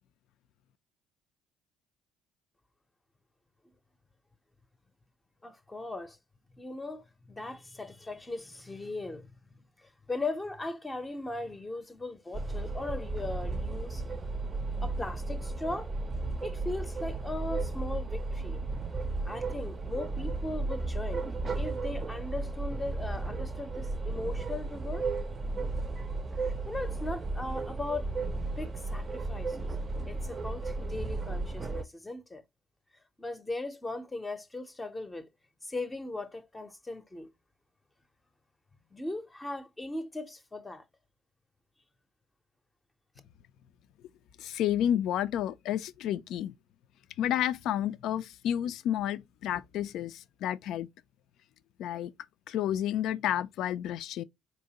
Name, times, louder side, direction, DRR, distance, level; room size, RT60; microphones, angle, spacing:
voice 1, 5.4-6.2 6.6-9.3 9.8-14.0 14.8-15.9 16.4-18.6 19.2-21.2 21.5-25.1 26.4-28.1 28.4-29.7 30.1-32.4 33.2-35.3 35.6-37.3 38.9-40.8, left 2 dB, 15° left, 0.6 m, -38 dB
sound 1, 12.3-31.8, right 3 dB, 35° right, 0.5 m, -34 dB
voice 2, 44.4-46.5 47.2-50.9 51.8-52.1 52.5-54.2, left 11 dB, 60° left, 0.3 m, -30 dB
4.4 x 2.7 x 2.8 m
figure-of-eight pair, 55°, 0 cm